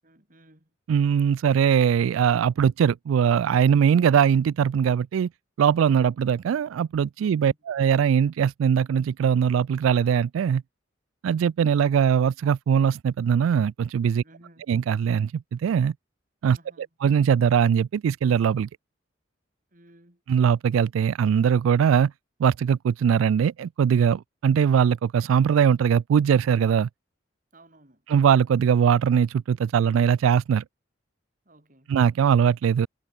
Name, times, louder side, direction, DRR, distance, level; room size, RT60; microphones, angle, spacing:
voice 1, 0.0-0.7 7.2-7.6 14.2-14.7 16.5-16.9 19.7-20.2 27.5-28.1 31.4-32.0, right 1 dB, 40° right, 6.8 m, -55 dB
voice 2, 0.9-5.3 5.6-10.6 11.2-14.2 14.7-15.9 16.4-16.6 17.0-18.7 20.3-22.1 22.4-26.9 28.1-30.6 31.9-32.9, right 7 dB, 90° right, 0.3 m, -21 dB
head